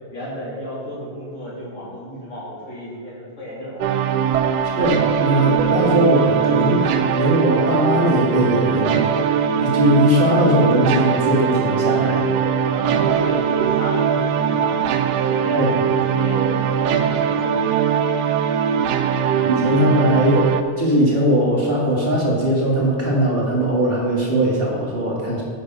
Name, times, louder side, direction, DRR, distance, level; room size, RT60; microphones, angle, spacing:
voice 1, 0.1-4.1 12.6-17.9, equal, 50° left, -6 dB, 2.6 m, -33 dB
sound 1, 3.8-20.6, right 7 dB, 85° right, 1.2 m, -20 dB
voice 2, 4.7-9.1 9.6-12.3 15.5-15.8 18.7-18.8 19.2-25.4, equal, 40° right, -4 dB, 1.6 m, -19 dB
7.9 x 5.6 x 5.3 m, 2.1 s
omnidirectional pair, 1.7 m